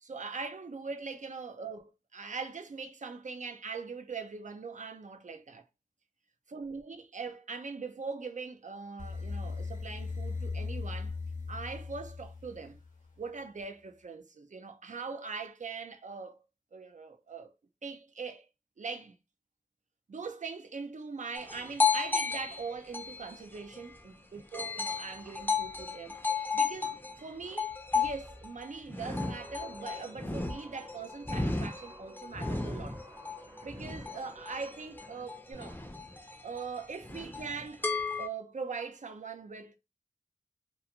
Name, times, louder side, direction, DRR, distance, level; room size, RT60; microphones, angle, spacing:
voice 1, 0.0-5.6 6.5-11.2 11.5-12.8 13.2-16.4 16.7-17.5 17.8-18.5 18.8-19.1 20.1-33.0 33.6-35.8 36.4-37.9 38.2-39.8, right 4 dB, 65° right, 0.4 m, -41 dB
sound 1, 9.0-13.1, left 4 dB, 70° left, 0.7 m, -38 dB
sound 2, 21.4-24.1 24.5-38.3, left 4 dB, 15° left, 0.5 m, -34 dB
Guitar, 29.0-35.5, right 1 dB, 25° right, 0.7 m, -52 dB
2.4 x 2.4 x 2.8 m
wide cardioid pair, 50°, 14 cm